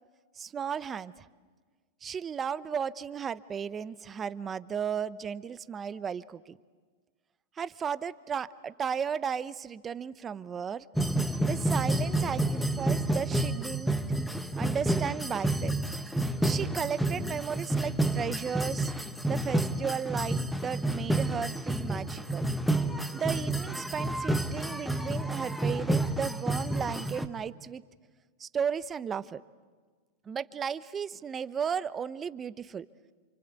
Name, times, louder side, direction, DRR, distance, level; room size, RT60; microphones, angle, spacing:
voice 1, 0.4-1.3 2.0-6.6 7.6-10.9 11.4-13.9 14.5-15.7 16.4-18.9 19.3-22.4 23.1-27.8 28.4-29.4 30.3-32.9, right 7 dB, 25° right, 15 dB, 0.8 m, -34 dB
sound 1, 11.0-27.3, right 1 dB, ahead, 1.3 m, -30 dB
28.5 x 25.5 x 8.2 m, 1.5 s
hypercardioid pair, 125°, 0 cm